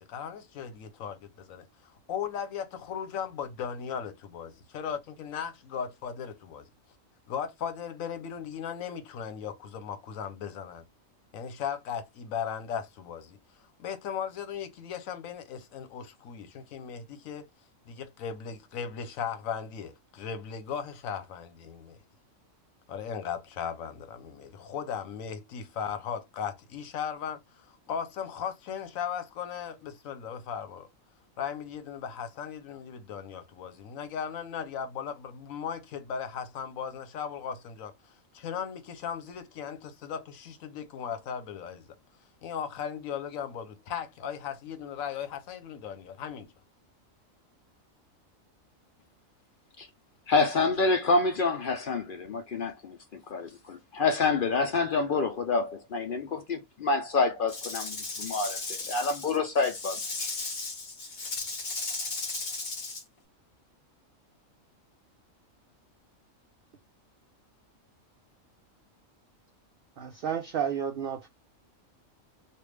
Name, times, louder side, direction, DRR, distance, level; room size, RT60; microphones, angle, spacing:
voice 1, 0.0-6.7 7.3-10.8 11.3-13.4 13.8-17.5 17.9-22.0 22.9-30.9 31.4-41.9 42.4-46.5, left 7 dB, 80° left, 1.1 m, -37 dB
voice 2, 50.3-60.3, left 3 dB, 60° left, 0.6 m, -28 dB
Rattle / Rattle (instrument), 57.5-63.0, left 3 dB, 40° left, 1.0 m, -35 dB
voice 3, 70.0-71.3, right 8 dB, 65° right, 0.5 m, -31 dB
3.3 x 2.4 x 3.1 m
omnidirectional pair, 1.4 m